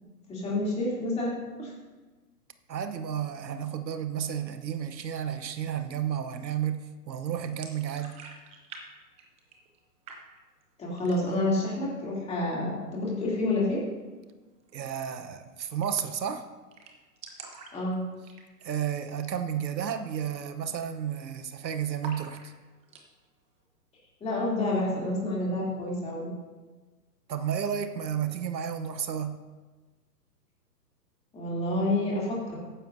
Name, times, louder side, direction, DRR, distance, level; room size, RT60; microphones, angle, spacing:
voice 1, 0.3-1.7 10.8-13.8 17.7-18.0 24.2-26.3 31.3-32.6, left 2 dB, 15° left, -5 dB, 3.0 m, -29 dB
voice 2, 2.7-8.2 14.7-16.5 18.6-22.5 27.3-29.4, right 9 dB, 85° right, 9 dB, 1.0 m, -32 dB
sound 1, 7.5-8.8 9.1-9.8 10.1-10.6 11.0-11.5 11.8-11.9 12.2-12.9 14.6-14.7 15.0-15.1 15.4-15.5 15.8-16.2 16.4-16.5 16.7-18.8 19.1-19.4 19.7-19.8 20.4-20.7 20.9-21.5 22.0-23.1, right 4 dB, 15° right, 0.8 m, -47 dB
14.0 x 10.0 x 2.7 m, 1.3 s
hypercardioid pair, 140°, 50 cm